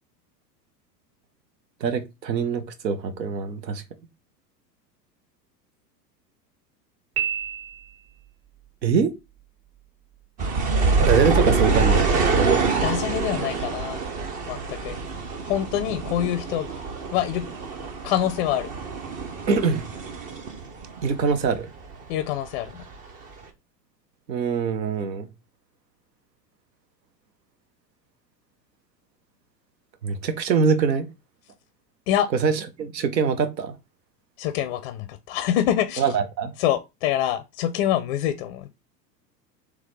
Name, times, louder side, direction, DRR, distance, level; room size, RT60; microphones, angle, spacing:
voice 1, 1.8-3.8 8.8-9.1 11.0-12.1 19.5-19.8 21.0-21.7 24.3-25.3 30.0-31.1 32.4-33.7 36.0-36.5, right 6 dB, 80° right, 0.9 m, -23 dB
Piano, 7.2-8.3, right 9 dB, 40° right, 1.8 m, -30 dB
sound 1, 10.4-21.6 21.8-22.9 23.4-23.5, right 4 dB, 20° right, 0.3 m, -25 dB
voice 2, 12.8-14.0 14.5-15.0 15.4-16.7 17.1-17.4 18.0-18.7 22.1-22.8 32.1-32.3 34.4-36.0 36.6-38.7, left 11 dB, 40° left, 0.4 m, -25 dB
3.7 x 3.1 x 3.2 m
figure-of-eight pair, 90°, 50 cm